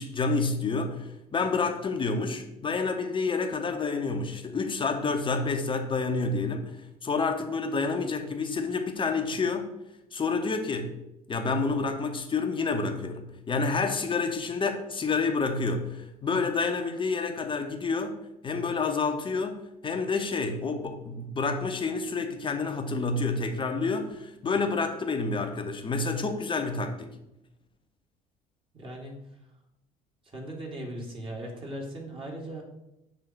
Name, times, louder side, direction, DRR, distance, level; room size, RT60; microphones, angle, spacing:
voice 1, 0.0-6.7 7.0-9.7 10.1-10.9 11.3-18.2 18.4-27.1, left 4 dB, 25° left, 5 dB, 1.0 m, -29 dB
voice 2, 28.7-29.1 30.3-32.6, right 1 dB, 25° right, -1 dB, 2.1 m, -38 dB
6.6 x 3.6 x 5.9 m, 0.88 s
figure-of-eight pair, 60°, 19 cm